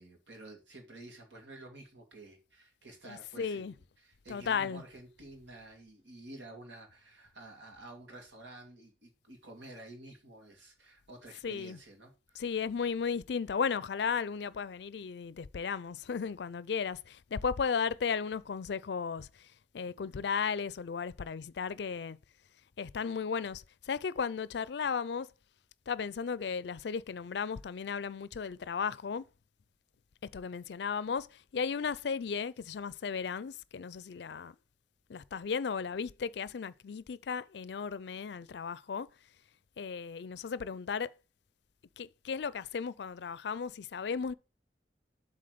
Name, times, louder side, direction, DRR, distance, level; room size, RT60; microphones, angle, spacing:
voice 1, 0.0-12.4, right 2 dB, 85° right, 2.4 m, -51 dB
voice 2, 3.0-3.7 4.3-4.8 11.4-11.8 12.4-19.3 19.7-22.2 22.8-25.3 25.9-29.2 30.3-31.3 31.5-34.5 35.1-39.1 39.8-41.1 42.0-44.3, left 6 dB, 70° left, 0.4 m, -35 dB
7.7 x 3.8 x 6.7 m
head